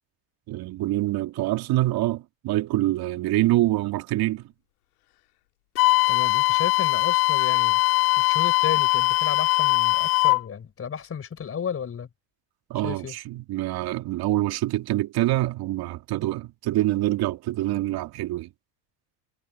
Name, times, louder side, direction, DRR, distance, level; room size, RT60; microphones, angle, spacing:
voice 1, 0.5-4.5 12.7-18.5, right 16 dB, 55° right, 2.6 m, -25 dB
Wind instrument woodwind instrument, 5.8-10.4, left 22 dB, 85° left, 2.7 m, -21 dB
voice 2, 6.1-7.8 8.2-12.1 12.8-13.2, left 7 dB, 30° left, 5.3 m, -33 dB
supercardioid pair, 100°, 43 cm